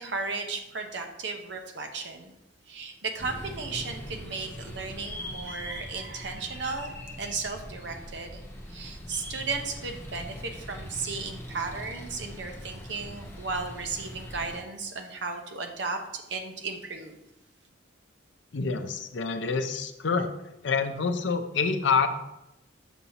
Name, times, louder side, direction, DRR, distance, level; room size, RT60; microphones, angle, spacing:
voice 1, 0.0-2.3 2.7-8.4 8.7-17.1, right 4 dB, 65° right, 5 dB, 0.7 m, -35 dB
sound 1, 3.2-14.6, equal, 15° left, 0.7 m, -41 dB
voice 2, 18.5-20.3 20.6-22.1, left 5 dB, 70° left, 8 dB, 0.5 m, -27 dB
6.1 x 2.8 x 5.6 m, 0.90 s
head